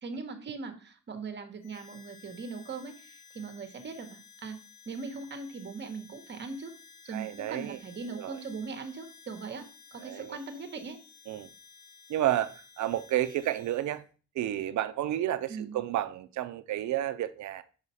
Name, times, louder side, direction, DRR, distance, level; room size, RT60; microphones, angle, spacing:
voice 1, 0.0-4.6 4.9-6.7 7.0-9.7 9.9-11.0 15.5-15.8, right 4 dB, 40° right, 1.1 m, -40 dB
Harmonica, 1.6-14.0, left 6 dB, 75° left, 1.8 m, -55 dB
voice 2, 7.1-7.8 8.1-8.4 10.0-10.4 11.3-11.5 12.1-14.0 14.3-17.6, right 13 dB, 75° right, 0.6 m, -31 dB
5.0 x 4.9 x 5.6 m
cardioid pair, 150°, 29 cm